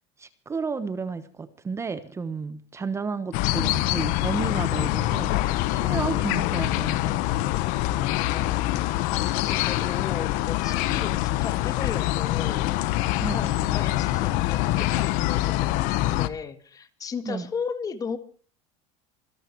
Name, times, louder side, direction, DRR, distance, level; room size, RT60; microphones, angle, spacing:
voice 1, 0.2-5.3 5.7-7.0 10.9-11.1 13.2-13.5 17.2-17.5, right 5 dB, 20° right, 12 dB, 1.0 m, -32 dB
sound 1, 3.3-16.3, left 16 dB, 60° left, 1.1 m, -25 dB
voice 2, 8.1-12.9 13.2-18.2, left 6 dB, 25° left, 11 dB, 1.7 m, -36 dB
25.5 x 11.5 x 4.6 m, 0.43 s
supercardioid pair, 130°, 15 cm